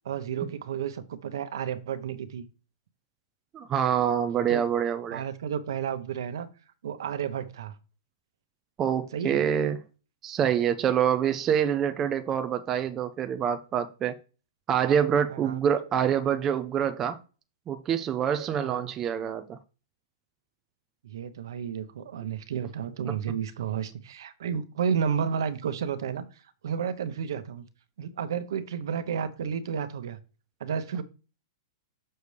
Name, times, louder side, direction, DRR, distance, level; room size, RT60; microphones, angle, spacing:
voice 1, 0.0-2.4 4.5-4.7 5.1-6.5 6.8-7.7 9.1-9.4 15.3-15.6 18.5-18.9 21.0-26.2 26.6-27.6 28.0-30.2 30.6-31.0, right 7 dB, 65° right, 0.9 m, -32 dB
voice 2, 3.5-5.2 8.8-9.8 10.2-14.1 14.7-17.2 17.7-19.6, right 8 dB, 15° right, 0.4 m, -26 dB
6.9 x 6.5 x 3.3 m
supercardioid pair, 180°, 2 cm